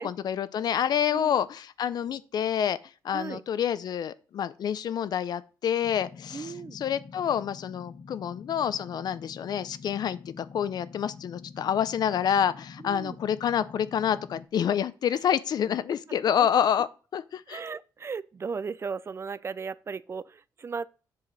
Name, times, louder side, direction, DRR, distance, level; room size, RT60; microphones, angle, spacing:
voice 1, 0.0-2.8 3.0-17.6, left 9 dB, 65° left, 0.6 m, -28 dB
sound 1, 5.8-14.5, left 5 dB, 45° left, 0.9 m, -47 dB
voice 2, 6.3-6.8 12.8-13.2 17.5-20.9, right 5 dB, 35° right, 0.4 m, -36 dB
7.7 x 4.9 x 5.4 m
cardioid pair, 90°, 7 cm